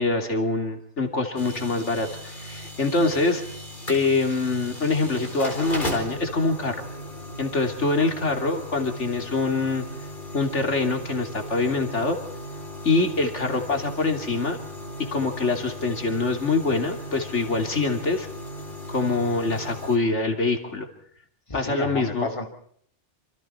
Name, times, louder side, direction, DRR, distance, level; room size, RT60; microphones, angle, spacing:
voice 1, 0.0-3.4 3.9-6.8 7.4-9.8 10.3-12.2 12.8-14.6 15.1-18.3 18.9-20.9 21.5-22.3, left 3 dB, 80° left, 4 dB, 3.2 m, -24 dB
sound 1, 1.4-20.0, equal, 45° left, 4.5 m, -37 dB
voice 2, 21.5-22.5, left 2 dB, 25° left, 4 dB, 2.8 m, -31 dB
27.0 x 26.5 x 4.5 m, 0.63 s
omnidirectional pair, 1.2 m